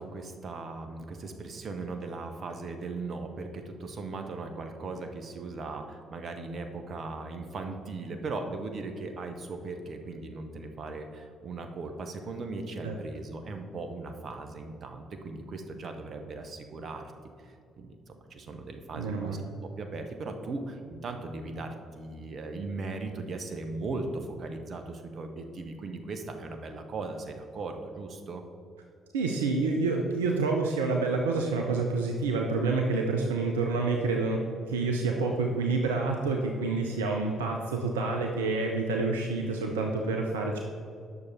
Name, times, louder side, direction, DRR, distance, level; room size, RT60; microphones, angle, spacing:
voice 1, 0.0-17.1 17.4-19.4 19.8-28.4, right 3 dB, 50° right, 5 dB, 1.0 m, -38 dB
voice 2, 19.0-19.4 29.1-40.6, right 3 dB, 80° right, 2 dB, 0.6 m, -28 dB
9.6 x 6.6 x 4.2 m, 2.3 s
figure-of-eight pair, 45°, 0 cm